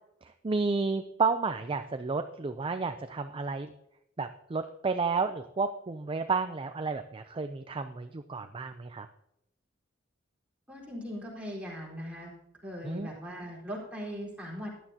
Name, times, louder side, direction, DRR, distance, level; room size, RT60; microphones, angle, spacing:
voice 1, 0.2-3.7 4.2-9.1 12.8-13.1, right 4 dB, 25° right, 8 dB, 0.4 m, -31 dB
voice 2, 10.7-12.3 12.6-14.7, equal, 5° right, -4 dB, 4.2 m, -39 dB
15.0 x 11.0 x 2.8 m, 0.81 s
head